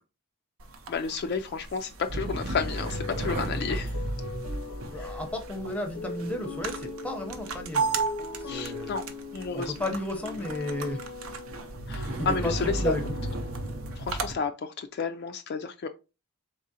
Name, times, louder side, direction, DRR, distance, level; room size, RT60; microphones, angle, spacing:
sound 1, 0.6-14.3, right 3 dB, 65° right, 0.6 m, -34 dB
voice 1, 0.9-3.9 4.9-5.1 8.5-9.0 9.3-9.7 11.9-12.9 14.0-15.9, left 5 dB, 45° left, 0.3 m, -31 dB
sound 2, 2.6-14.3, left 3 dB, 85° left, 0.7 m, -41 dB
voice 2, 4.9-8.0 8.4-8.9 9.5-11.0 12.0-12.5 12.8-13.0, left 1 dB, 5° left, 0.7 m, -33 dB
3.9 x 3.7 x 2.7 m
head